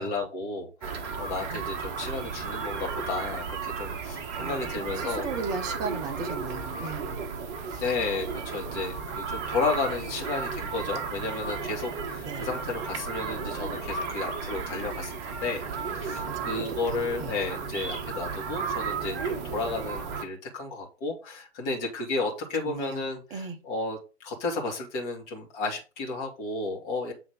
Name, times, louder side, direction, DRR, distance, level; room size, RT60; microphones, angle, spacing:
voice 1, 0.0-5.3 7.8-27.1, left 3 dB, 30° left, 2.4 m, -33 dB
sound 1, 0.8-20.2, right 5 dB, 25° right, 1.1 m, -34 dB
voice 2, 4.4-7.3 7.7-7.8 12.2-12.5 16.4-16.6 16.9-17.3 22.6-23.6, right 4 dB, 10° right, 0.5 m, -37 dB
7.8 x 3.8 x 5.1 m
figure-of-eight pair, 125°, 35 cm